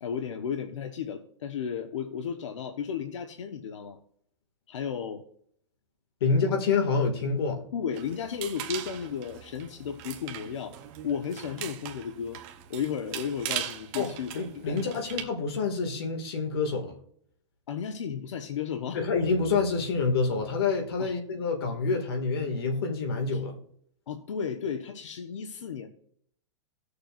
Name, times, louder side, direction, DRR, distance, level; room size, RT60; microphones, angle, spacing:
voice 1, 0.0-4.0 4.7-5.2 7.7-10.8 11.0-12.4 12.7-14.3 14.7-15.0 17.7-19.0 21.0-21.1 23.3-23.4 24.1-25.9, left 7 dB, 85° left, 6 dB, 1.1 m, -34 dB
voice 2, 6.2-7.6 14.0-14.1 14.3-16.9 18.9-23.5, left 4 dB, 55° left, 2 dB, 2.1 m, -27 dB
sound 1, 7.9-15.2, right 10 dB, 25° right, 0.8 m, -40 dB
17.5 x 6.7 x 2.5 m, 0.65 s
supercardioid pair, 175°, 15 cm